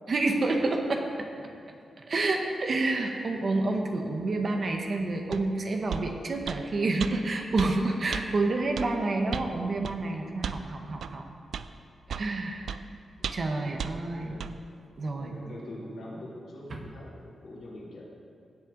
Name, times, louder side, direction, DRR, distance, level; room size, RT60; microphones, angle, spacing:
voice 1, 0.1-1.3 2.1-11.2 12.1-12.7 13.3-14.4 15.0-15.3, right 2 dB, 45° right, 3 dB, 1.1 m, -29 dB
sound 1, 5.3-5.5 5.9-6.1 6.5-6.6 7.0-7.1 7.6-7.7 8.1-8.3 8.8-8.9 9.3-9.5 9.8-10.0 10.4-10.6 11.0-11.1 11.5-11.7 12.1-12.3 12.7-12.8 13.2-13.5 13.8-13.9 14.4-14.5, right 7 dB, 75° right, 0.3 m, -34 dB
voice 2, 13.4-14.4 15.2-18.0, left 1 dB, 70° left, -5 dB, 2.8 m, -44 dB
16.0 x 7.6 x 3.9 m, 2.5 s
wide cardioid pair, 140°, 0 cm